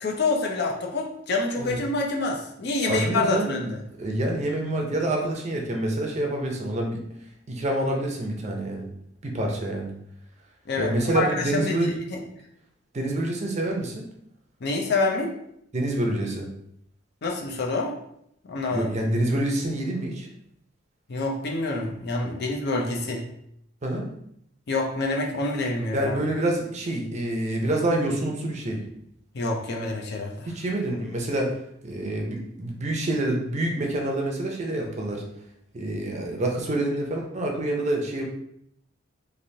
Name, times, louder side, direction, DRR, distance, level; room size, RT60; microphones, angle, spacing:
voice 1, 0.0-3.8 10.7-12.2 14.6-15.3 17.2-17.9 18.5-18.9 21.1-23.2 24.7-26.2 29.3-30.5, left 3 dB, 60° left, 0 dB, 0.5 m, -27 dB
voice 2, 2.9-3.5 4.0-7.0 7.5-8.8 9.2-9.9 10.8-11.9 12.9-14.1 15.7-16.5 18.7-20.3 23.8-24.1 25.9-28.8 30.5-31.5 31.8-35.2 35.7-38.2, right 1 dB, 35° right, 1 dB, 0.5 m, -27 dB
3.2 x 2.5 x 2.7 m, 0.74 s
head